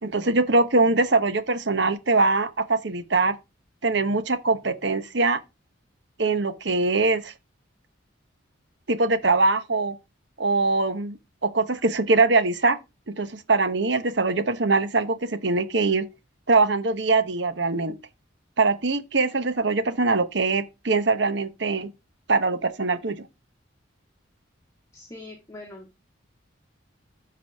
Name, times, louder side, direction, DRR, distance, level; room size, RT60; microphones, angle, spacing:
voice 1, 0.0-3.4 3.8-5.4 6.2-7.3 8.9-10.0 10.4-11.2 11.4-12.8 13.1-16.1 16.5-17.9 18.6-21.9 22.3-23.2, right 3 dB, 65° right, 1.0 m, -22 dB
voice 2, 24.9-26.0, left 2 dB, 15° left, 1.9 m, -43 dB
12.5 x 4.8 x 3.5 m
head